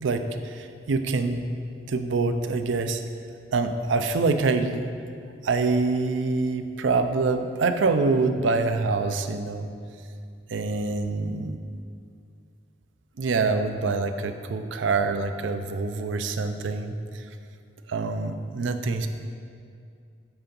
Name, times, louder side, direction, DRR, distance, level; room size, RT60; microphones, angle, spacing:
voice 1, 0.0-1.5 1.9-3.0 3.5-4.9 5.4-9.7 10.5-11.6 13.2-17.2 17.9-19.1, right 3 dB, 90° right, 8 dB, 0.5 m, -25 dB
8.0 x 3.9 x 5.3 m, 2.3 s
head